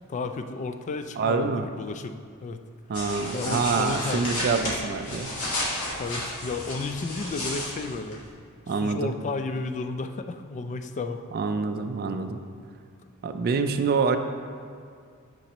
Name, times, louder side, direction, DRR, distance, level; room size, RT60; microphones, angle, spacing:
voice 1, 0.0-2.6 3.3-4.2 5.9-8.2 8.7-11.2, left 3 dB, 35° left, 8 dB, 0.3 m, -32 dB
voice 2, 1.2-1.6 2.9-5.3 8.7-9.1 11.3-12.4 13.2-14.2, right 4 dB, 45° right, 7 dB, 0.4 m, -26 dB
sound 1, 2.9-8.3, left 1 dB, 80° left, 1.7 m, -32 dB
8.6 x 5.3 x 3.0 m, 2.2 s
head